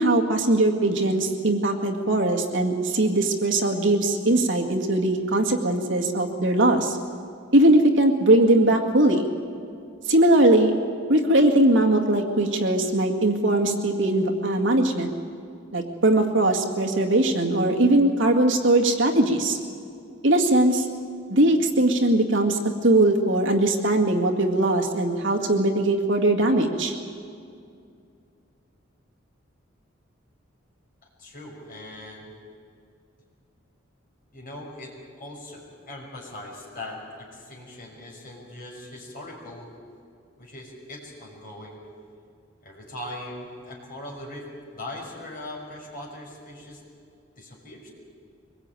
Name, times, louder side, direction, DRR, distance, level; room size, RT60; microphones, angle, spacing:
voice 1, 0.0-7.0 7.5-9.3 10.1-10.7 11.1-15.1 15.7-19.6 20.2-20.9 21.3-26.9, right 1 dB, 65° right, 2 dB, 2.0 m, -20 dB
voice 2, 31.2-32.3 34.3-39.7 40.4-41.8 42.6-44.5 44.7-46.8 47.4-47.9, left 1 dB, 45° left, -1 dB, 5.7 m, -40 dB
23.0 x 20.5 x 9.1 m, 2.4 s
head